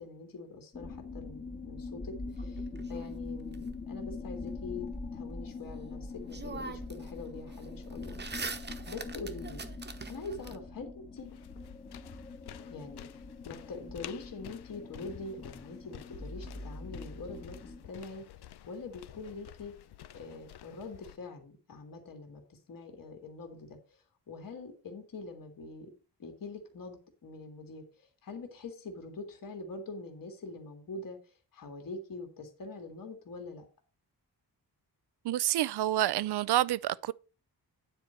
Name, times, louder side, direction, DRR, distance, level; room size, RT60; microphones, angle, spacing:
voice 1, 0.0-9.6 10.1-11.3 12.7-13.0 13.4-19.7 20.1-25.9 26.2-33.6, left 3 dB, 60° left, 2.1 m, -44 dB
sound 1, 0.7-17.9, left 3 dB, 25° left, 1.2 m, -43 dB
sound 2, 2.3-3.6 5.8-5.9 6.3-7.1 7.4-10.6, right 4 dB, 25° right, 1.0 m, -42 dB
sound 3, 11.2-21.2, left 12 dB, 90° left, 0.7 m, -51 dB
voice 2, 35.2-37.1, right 13 dB, 90° right, 0.5 m, -28 dB
9.7 x 4.5 x 6.3 m
wide cardioid pair, 150°, 38 cm